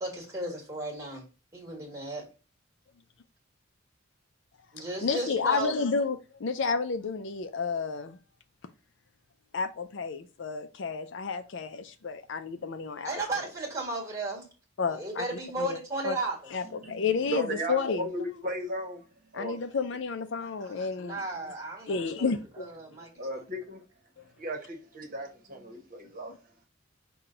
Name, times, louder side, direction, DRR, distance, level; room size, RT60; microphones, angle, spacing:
voice 1, 0.0-1.3 1.5-2.3 4.7-5.7 13.0-14.5 14.9-16.5 20.4-22.3 22.6-23.4, right 2 dB, 15° right, 1.5 m, -35 dB
voice 2, 4.8-8.2 9.5-13.1 14.8-15.2 15.6-15.8 16.0-16.2 16.5-18.1 19.3-21.2 21.9-22.7 23.0-23.1, left 5 dB, 60° left, 0.4 m, -31 dB
voice 3, 16.6-19.6 23.2-23.8 24.4-26.6, right 1 dB, 40° right, 1.1 m, -36 dB
5.8 x 2.3 x 3.8 m
head